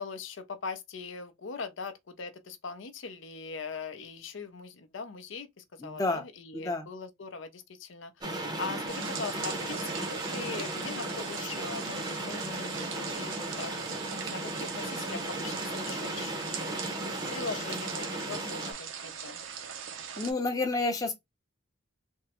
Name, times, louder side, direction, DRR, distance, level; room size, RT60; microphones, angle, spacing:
voice 1, 0.0-16.3 17.3-19.4, left 4 dB, 65° left, 0.6 m, -41 dB
voice 2, 5.8-6.2 6.5-6.9 17.1-17.3 20.2-21.1, left 3 dB, 20° left, 0.6 m, -30 dB
sound 1, 8.2-18.7, right 1 dB, 20° right, 0.6 m, -36 dB
sound 2, 8.9-20.3, right 7 dB, 70° right, 0.6 m, -41 dB
3.5 x 2.1 x 2.8 m
head